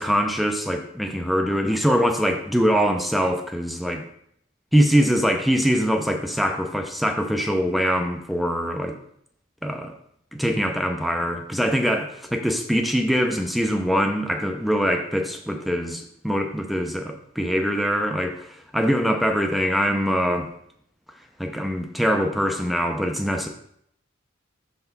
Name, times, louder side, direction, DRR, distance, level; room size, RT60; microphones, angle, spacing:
voice 1, 0.0-4.0 4.7-8.9 9.6-9.9 10.3-20.5 21.4-23.5, equal, ahead, 4 dB, 0.5 m, -23 dB
5.6 x 3.4 x 5.7 m, 0.70 s
head